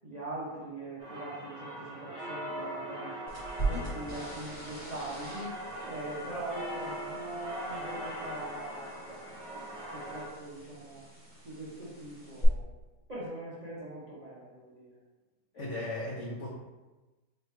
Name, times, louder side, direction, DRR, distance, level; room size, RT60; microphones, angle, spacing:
voice 1, 0.0-3.1 3.6-5.6 5.8-9.0 9.9-11.0 11.4-12.8 13.1-15.0, right 1 dB, 70° right, -8 dB, 0.3 m, -42 dB
sound 1, 1.0-10.3, right 1 dB, 55° right, 1.7 m, -41 dB
sound 2, 3.3-12.4, right 2 dB, 40° left, 1.7 m, -42 dB
voice 2, 15.5-16.5, left 1 dB, 80° left, -4 dB, 0.6 m, -36 dB
4.3 x 3.2 x 3.1 m, 1.2 s
omnidirectional pair, 2.1 m